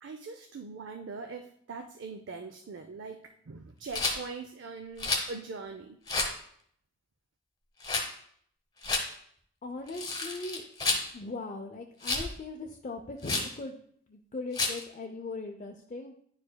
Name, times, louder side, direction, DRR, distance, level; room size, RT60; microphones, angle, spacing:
voice 1, 0.0-6.0, right 4 dB, 75° right, 5 dB, 0.5 m, -42 dB
Rattle, 3.9-4.2 5.0-5.3 6.1-6.4 7.8-8.1 8.8-9.1 9.9-11.1 12.0-12.3 13.2-13.5 14.5-14.8, left 3 dB, 20° left, 1.0 m, -30 dB
voice 2, 9.6-10.6 11.1-13.8 14.1-16.1, left 3 dB, 40° left, 2 dB, 0.4 m, -39 dB
10.0 x 4.9 x 2.2 m, 0.66 s
head